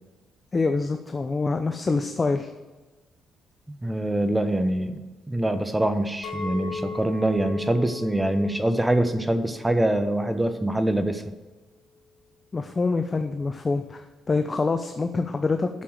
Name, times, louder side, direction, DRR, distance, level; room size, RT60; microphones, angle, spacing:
voice 1, 0.5-2.5 12.5-15.7, left 3 dB, 30° left, 7 dB, 0.6 m, -25 dB
voice 2, 3.8-5.0 5.3-11.2, right 1 dB, 10° right, 9 dB, 0.9 m, -24 dB
Chink clink, 6.2-11.4, left 4 dB, 80° left, 3.2 m, -38 dB
7.3 x 6.8 x 7.8 m, 1.2 s
cardioid pair, 90°, 0 cm